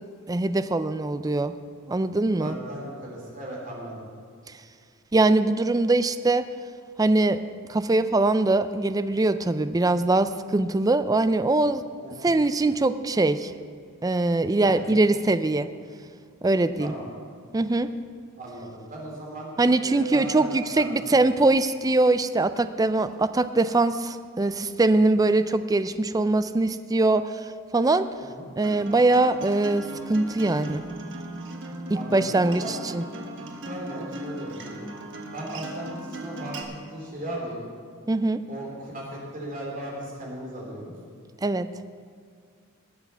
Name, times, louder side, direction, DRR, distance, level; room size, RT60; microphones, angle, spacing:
voice 1, 0.3-1.5 1.9-2.6 5.1-6.5 7.0-7.4 7.7-11.8 12.2-13.5 14.0-15.7 16.4-16.9 17.5-17.9 19.6-28.1 28.6-30.8 32.1-33.0 38.1-38.4 41.4-41.7, right 2 dB, 15° right, 12 dB, 0.4 m, -22 dB
voice 2, 2.4-4.1 12.0-12.3 14.6-14.9 16.8-17.1 18.4-19.5 19.8-21.2 28.2-28.5 31.9-32.9 33.6-34.8 35.3-36.6 36.9-37.6 38.5-40.9, right 1 dB, 40° right, -3 dB, 3.4 m, -37 dB
Acoustic guitar, 28.6-36.6, right 1 dB, 60° right, 1.4 m, -38 dB
20.0 x 7.0 x 5.6 m, 2.1 s
head